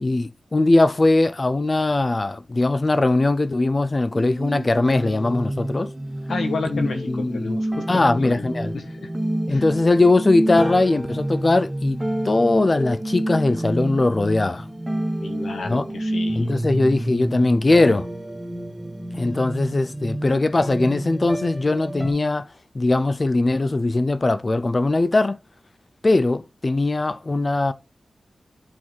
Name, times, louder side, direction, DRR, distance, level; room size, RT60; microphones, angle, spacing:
voice 1, 0.0-5.9 6.7-7.6 7.9-8.7 9.5-14.7 15.7-15.9 16.4-18.1 19.2-22.5 22.7-25.4 26.0-27.7, left 2 dB, 30° left, 0.3 m, -20 dB
sound 1, 4.1-22.1, right 1 dB, 10° right, 1.1 m, -29 dB
voice 2, 6.3-9.1 9.5-9.6 15.2-16.5, left 4 dB, 90° left, 1.3 m, -32 dB
8.4 x 4.0 x 4.5 m
wide cardioid pair, 150°, 0 cm